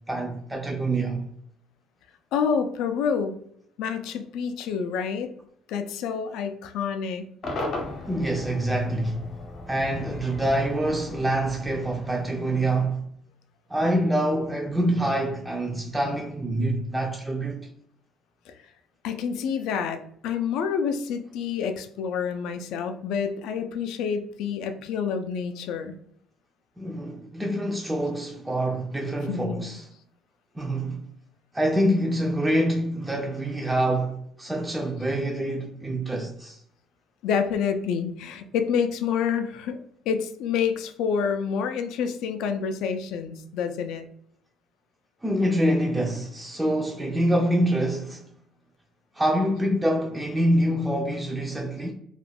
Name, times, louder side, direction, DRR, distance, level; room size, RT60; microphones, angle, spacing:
voice 1, 0.1-1.3 8.1-9.3 9.7-13.0 13.7-17.7 26.8-29.9 30.6-31.1 31.5-36.6 45.2-48.2 49.2-51.9, right 1 dB, 10° right, 0.3 m, -26 dB
voice 2, 2.3-3.4 3.8-5.3 5.7-7.3 18.5-18.6 19.0-26.0 29.3-29.7 37.2-39.8 40.1-44.1, left 6 dB, 80° left, 0.3 m, -28 dB
Cheering / Crowd / Fireworks, 7.4-12.7, left 2 dB, 50° left, 0.8 m, -37 dB
2.3 x 2.1 x 3.3 m
cardioid pair, 125°, 0 cm